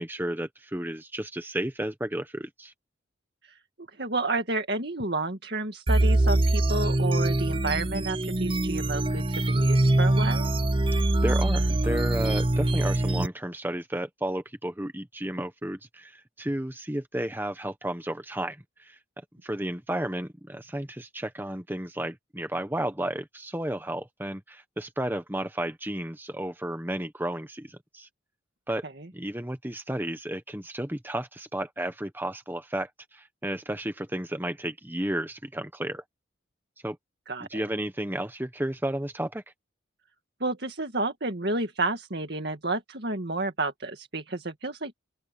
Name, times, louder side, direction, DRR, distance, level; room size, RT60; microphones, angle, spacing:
voice 1, 0.0-2.7 11.2-19.0 19.4-28.1 28.7-28.8 29.1-36.0 36.8-37.0 37.5-39.4, right 1 dB, 10° right, 1.2 m, -32 dB
voice 2, 4.0-10.5 28.8-29.1 37.3-37.6 40.4-44.9, right 2 dB, 55° right, 2.1 m, -31 dB
sound 1, 5.9-13.3, right 1 dB, 25° right, 0.7 m, -24 dB
open air
head